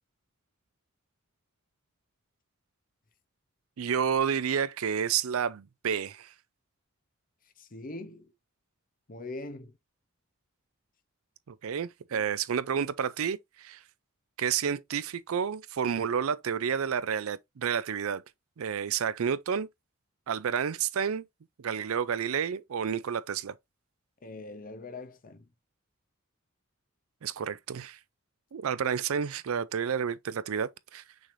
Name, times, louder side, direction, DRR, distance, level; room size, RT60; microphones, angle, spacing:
voice 1, 3.8-6.3 11.5-13.8 14.4-18.2 18.6-19.7 20.3-21.2 21.6-23.5 27.2-28.0 28.5-31.0, right 7 dB, 75° right, 0.4 m, -30 dB
voice 2, 7.6-8.3 9.1-9.8 12.1-12.2 24.2-25.4, left 2 dB, 40° left, 0.8 m, -42 dB
6.2 x 3.3 x 2.6 m
head